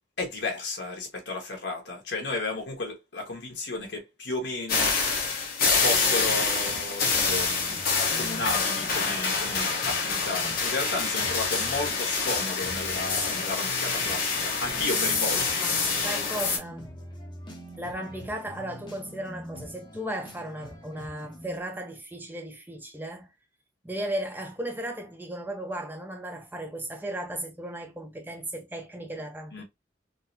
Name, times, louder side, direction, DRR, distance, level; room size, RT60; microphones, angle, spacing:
voice 1, 0.2-5.3 5.8-7.5 8.0-15.6 29.5-29.6, left 2 dB, 75° left, 1.2 m, -33 dB
sound 1, 4.7-16.6, left 4 dB, 55° left, 1.1 m, -26 dB
sound 2, 6.6-21.6, equal, 25° left, 0.8 m, -44 dB
voice 2, 15.6-17.0 17.8-23.3 23.8-29.6, right 1 dB, 10° right, 0.5 m, -36 dB
3.8 x 2.0 x 2.6 m
head